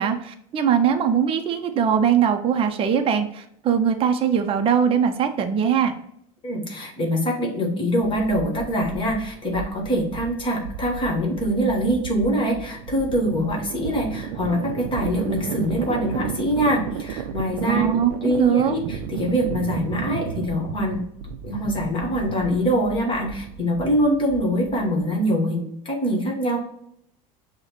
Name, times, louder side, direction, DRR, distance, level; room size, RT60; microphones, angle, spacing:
voice 1, 0.0-5.9 17.7-18.7, right 8 dB, 30° right, 6 dB, 0.5 m, -21 dB
voice 2, 6.4-21.0 21.4-26.6, equal, 25° left, 1 dB, 1.2 m, -24 dB
sound 1, 8.0-25.0, right 8 dB, 85° right, 0.4 m, -34 dB
6.2 x 2.2 x 3.0 m, 0.72 s
supercardioid pair, 115°, 18 cm